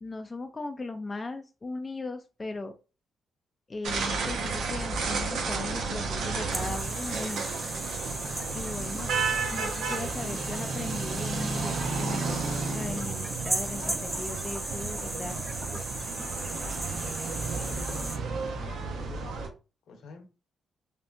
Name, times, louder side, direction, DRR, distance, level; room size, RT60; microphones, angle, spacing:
voice 1, 0.0-2.8 3.7-7.4 8.5-9.1 9.5-15.4, left 3 dB, 30° left, 0.4 m, -38 dB
sound 1, 3.8-19.5, right 4 dB, 75° right, 0.7 m, -32 dB
sound 2, 6.5-18.2, right 1 dB, 15° right, 0.6 m, -36 dB
voice 2, 17.4-19.4 19.9-20.3, left 3 dB, 70° left, 0.9 m, -47 dB
3.4 x 2.7 x 2.5 m
supercardioid pair, 70°, 0 cm